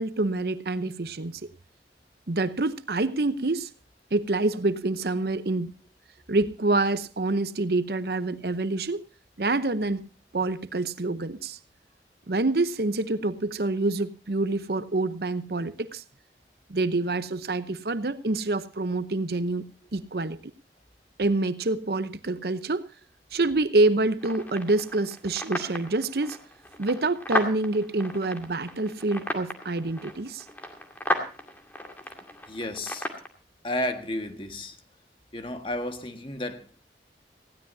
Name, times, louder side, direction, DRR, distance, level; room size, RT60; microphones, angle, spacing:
voice 1, 0.0-1.4 2.3-3.7 4.1-5.7 6.3-9.0 9.4-10.1 10.3-11.6 12.3-16.0 16.7-20.5 21.2-22.9 23.3-26.4 26.8-30.4, right 2 dB, 60° right, 0.8 m, -27 dB
sound 1, 24.2-33.3, left 1 dB, 10° left, 2.2 m, -35 dB
voice 2, 32.5-33.1 33.6-34.8 35.3-36.8, left 1 dB, 30° left, 1.6 m, -32 dB
19.0 x 16.0 x 2.7 m
head